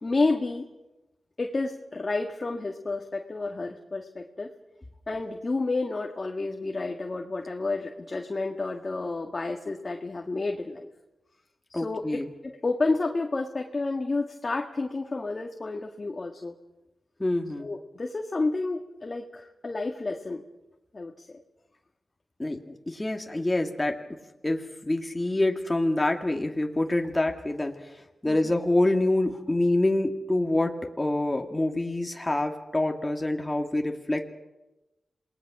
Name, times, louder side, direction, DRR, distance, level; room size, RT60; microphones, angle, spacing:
voice 1, 0.0-0.7 1.4-4.5 5.1-10.9 11.7-16.6 17.6-20.4 20.9-21.3 28.3-28.5, left 3 dB, 40° left, 2 dB, 2.0 m, -30 dB
voice 2, 11.7-12.3 17.2-17.7 22.4-24.0 24.4-27.9 28.2-34.4, left 1 dB, 20° left, 3 dB, 2.3 m, -26 dB
27.5 x 19.5 x 6.2 m, 1.0 s
cardioid pair, 55°, 0 cm